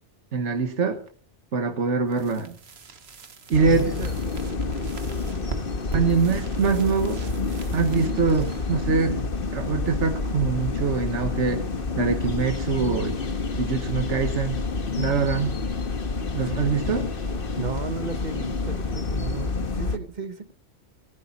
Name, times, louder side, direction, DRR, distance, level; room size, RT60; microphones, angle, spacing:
voice 1, 0.3-1.0 1.5-2.6 3.5-3.9 5.9-7.3 7.7-9.2 9.5-11.6 12.0-13.2 13.6-14.6 15.0-15.6 16.3-17.1, right 5 dB, 80° right, 5 dB, 1.6 m, -24 dB
sound 1, 2.1-9.8, right 4 dB, 60° right, 1.6 m, -42 dB
sound 2, 3.5-20.0, left 4 dB, 50° left, 1.6 m, -28 dB
voice 2, 3.6-4.1 4.4-4.7 5.9-6.1 17.0-20.5, right 5 dB, 40° right, 10 dB, 1.4 m, -35 dB
19.0 x 15.0 x 4.3 m, 0.43 s
omnidirectional pair, 1.2 m